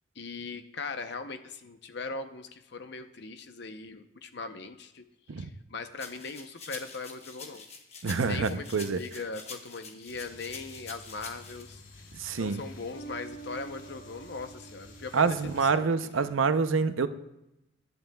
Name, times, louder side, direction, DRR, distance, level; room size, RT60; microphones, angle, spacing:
voice 1, 0.2-5.0 5.3-7.7 8.2-11.8 12.3-16.4, left 4 dB, 55° left, 8 dB, 0.7 m, -40 dB
sound 1, 6.0-11.6, left 4 dB, 30° left, 1.1 m, -45 dB
voice 2, 8.0-9.0 12.2-12.6 15.1-17.1, right 5 dB, 75° right, 11 dB, 0.6 m, -26 dB
sound 2, 10.1-15.7, right 1 dB, 90° left, 2.3 m, -48 dB
23.0 x 11.0 x 2.3 m, 0.89 s
head